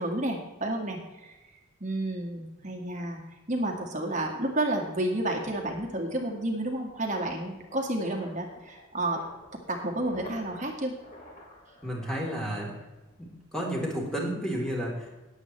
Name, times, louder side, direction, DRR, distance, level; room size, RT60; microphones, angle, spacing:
voice 1, 0.0-1.4 1.8-3.2 3.5-9.2 9.7-11.0, right 1 dB, 35° right, 1 dB, 1.8 m, -31 dB
sound 1, 5.2-13.4 13.6-13.9, left 1 dB, 40° left, 3.0 m, -50 dB
voice 2, 11.8-12.7 13.2-15.3, equal, 5° left, -3 dB, 3.2 m, -32 dB
20.0 x 8.2 x 3.2 m, 1.1 s
head